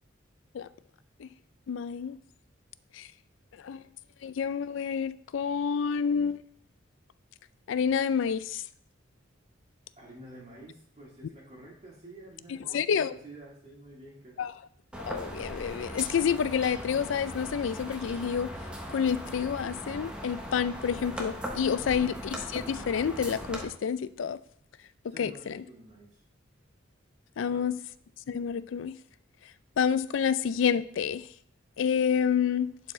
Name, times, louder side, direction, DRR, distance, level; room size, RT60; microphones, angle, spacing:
voice 1, 1.7-2.2 2.9-3.1 3.6-3.9 4.2-6.4 7.7-8.6 12.5-13.1 14.4-14.5 15.0-18.5 18.9-24.4 25.0-25.6 27.4-27.8 28.3-29.0 29.8-31.3 31.8-32.7, left 7 dB, 70° left, 16 dB, 0.4 m, -29 dB
voice 2, 10.0-14.4 21.7-22.1 25.1-26.2 27.4-27.7, right 2 dB, 35° right, -4 dB, 2.0 m, -49 dB
sound 1, 14.9-23.7, equal, 5° right, 0.9 m, -39 dB
11.0 x 4.6 x 3.1 m, 0.65 s
head